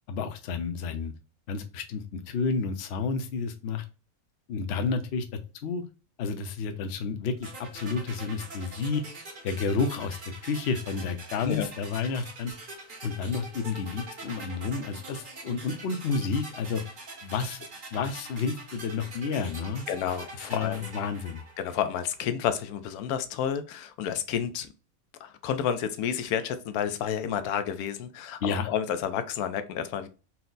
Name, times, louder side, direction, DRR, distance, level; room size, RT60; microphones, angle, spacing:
voice 1, 0.1-1.1 1.5-3.8 4.5-5.8 6.2-9.0 9.4-10.2 10.4-12.5 13.0-16.8 17.2-17.7 17.9-19.9 20.4-21.4 28.4-28.7, left 5 dB, 55° left, 0.8 m, -30 dB
sound 1, 7.4-22.3, right 2 dB, 40° right, 1.1 m, -44 dB
voice 2, 19.9-21.0 21.6-24.7 25.2-30.1, left 8 dB, 90° left, 1.1 m, -30 dB
4.3 x 2.1 x 3.9 m
omnidirectional pair, 1.5 m